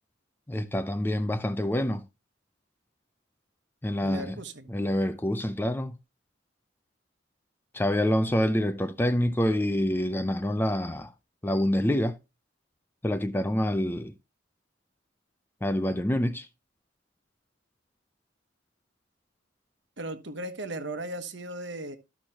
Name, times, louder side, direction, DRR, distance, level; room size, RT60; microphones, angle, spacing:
voice 1, 0.5-2.0 3.8-4.4 4.7-6.0 7.7-11.1 11.4-12.2 13.0-14.1 15.6-16.5, left 1 dB, 10° left, 0.4 m, -26 dB
voice 2, 4.0-4.7 20.0-22.0, right 1 dB, 55° right, 1.2 m, -36 dB
13.0 x 6.2 x 2.8 m
head